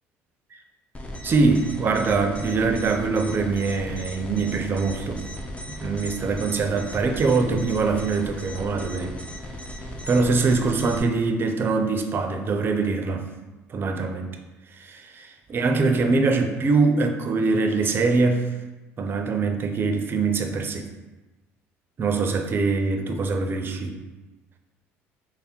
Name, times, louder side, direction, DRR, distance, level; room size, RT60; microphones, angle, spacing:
sound 1, 0.9-11.0, left 1 dB, 20° left, 0.6 m, -37 dB
voice 1, 1.2-5.3 5.8-9.1 10.1-13.3 13.7-14.3 14.8-18.5 19.0-20.9 22.0-24.0, right 4 dB, 40° right, 5 dB, 0.5 m, -23 dB
3.4 x 2.1 x 4.2 m, 1.1 s
supercardioid pair, 80°, 6 cm